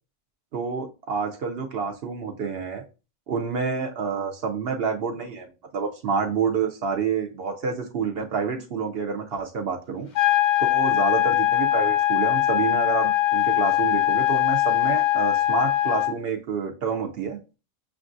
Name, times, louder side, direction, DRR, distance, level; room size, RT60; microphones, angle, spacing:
voice 1, 0.5-2.8 3.3-10.1 10.6-17.4, right 5 dB, 60° right, 3 dB, 0.7 m, -28 dB
sound 1, 10.2-16.1, left 14 dB, 45° left, 0.6 m, -21 dB
6.5 x 2.3 x 2.5 m, 0.32 s
omnidirectional pair, 1.3 m